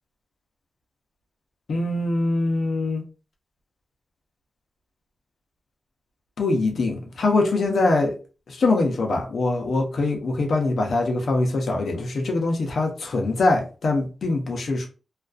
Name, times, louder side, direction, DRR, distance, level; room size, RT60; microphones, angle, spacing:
voice 1, 1.7-3.0 6.4-8.1 8.5-14.9, left 2 dB, 75° left, 0.6 m, -23 dB
2.4 x 2.2 x 2.3 m
wide cardioid pair, 140°, 0 cm